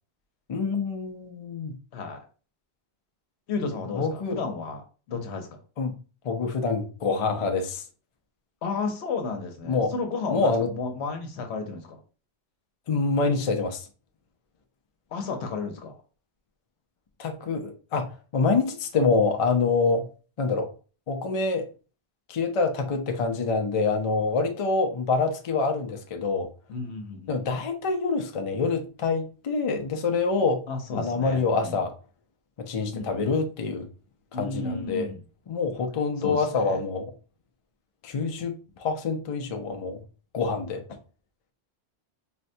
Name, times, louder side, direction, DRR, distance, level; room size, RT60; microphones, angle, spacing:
voice 1, 0.5-1.8 3.9-4.4 5.8-6.0 6.2-7.8 9.7-9.9 10.3-10.7 12.9-13.9 17.2-20.1 20.4-20.7 21.1-21.7 22.3-26.5 27.3-30.6 30.9-31.9 32.6-33.9 34.3-35.1 35.5-37.1 38.0-40.0 40.3-40.8, left 4 dB, 50° left, 0.4 m, -26 dB
voice 2, 1.9-2.3 3.5-5.6 8.6-12.0 15.1-16.0 26.7-27.3 30.7-31.8 32.9-33.2 34.3-35.2 36.2-36.8, left 4 dB, 80° left, 1.0 m, -33 dB
4.1 x 2.1 x 2.6 m
omnidirectional pair, 1.1 m